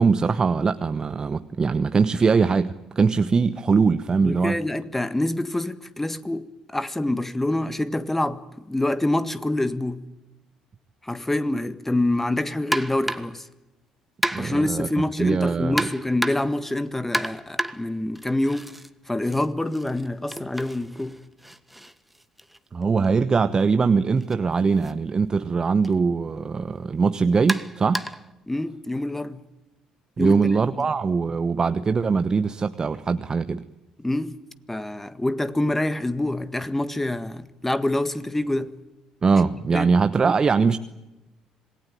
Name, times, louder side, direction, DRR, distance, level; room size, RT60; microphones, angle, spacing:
voice 1, 0.0-4.6 14.3-14.9 15.2-15.8 22.7-28.0 30.2-33.6 39.2-40.8, right 5 dB, 35° right, 1.0 m, -21 dB
voice 2, 4.2-10.0 11.0-13.5 14.3-18.7 19.1-21.2 28.5-29.4 30.2-30.9 34.0-34.4 34.7-38.8 39.7-39.9, left 1 dB, 10° left, 1.7 m, -26 dB
sound 1, 12.7-13.4 14.2-14.7 15.8-16.6 17.1-18.9 19.2-23.1 24.2-24.4 24.8-24.9 25.8-26.0 27.5-28.3, right 1 dB, 5° right, 1.5 m, -31 dB
27.0 x 19.5 x 9.0 m
hypercardioid pair, 55°, 2 cm